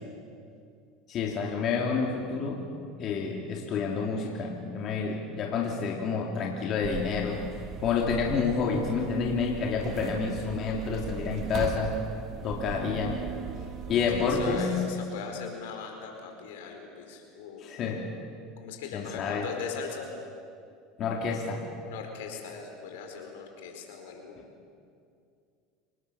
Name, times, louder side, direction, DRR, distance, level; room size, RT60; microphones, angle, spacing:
voice 1, 1.1-2.6 3.0-7.4 7.8-12.0 12.4-13.3 13.9-14.7 17.6-18.1 18.9-19.4 21.0-21.6, left 5 dB, 50° left, -1 dB, 3.3 m, -29 dB
sound 1, 6.8-14.6, right 6 dB, 45° right, 1.6 m, -38 dB
voice 2, 13.8-17.7 18.6-20.1 21.9-24.3, left 5 dB, 80° left, 3 dB, 4.8 m, -40 dB
28.0 x 20.0 x 7.2 m, 2.4 s
supercardioid pair, 100°, 0 cm